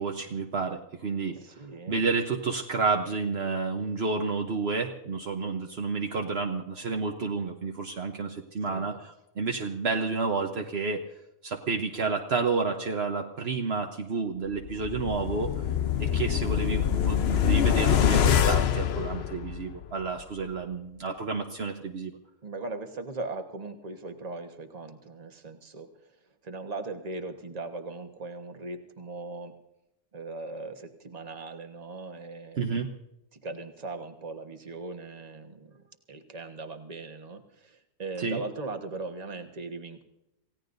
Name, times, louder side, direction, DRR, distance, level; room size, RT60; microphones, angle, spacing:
voice 1, 0.0-1.4 1.9-11.0 11.4-15.5 16.0-22.2 32.6-32.9 38.2-38.4, right 4 dB, 60° right, 3 dB, 1.2 m, -30 dB
voice 2, 1.4-2.0 8.7-9.0 22.4-26.2 26.4-29.5 30.1-32.6 33.3-40.0, right 3 dB, 35° right, 5 dB, 1.3 m, -39 dB
sound 1, 14.6-19.8 20.2-20.3, left 9 dB, 60° left, 0.9 m, -25 dB
27.5 x 16.5 x 2.6 m, 0.87 s
omnidirectional pair, 1.3 m